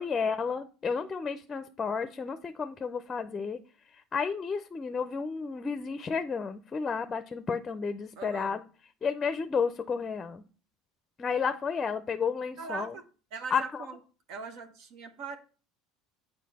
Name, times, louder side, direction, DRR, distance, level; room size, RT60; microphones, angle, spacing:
voice 1, 0.0-3.6 4.1-8.6 9.0-10.4 11.2-12.9 13.5-13.6, left 5 dB, 30° left, 10 dB, 0.5 m, -31 dB
voice 2, 8.2-8.6 12.6-13.1 13.3-14.0 14.3-15.4, right 5 dB, 65° right, 7 dB, 0.9 m, -40 dB
7.4 x 4.5 x 4.2 m, 0.38 s
hypercardioid pair, 80°, 0 cm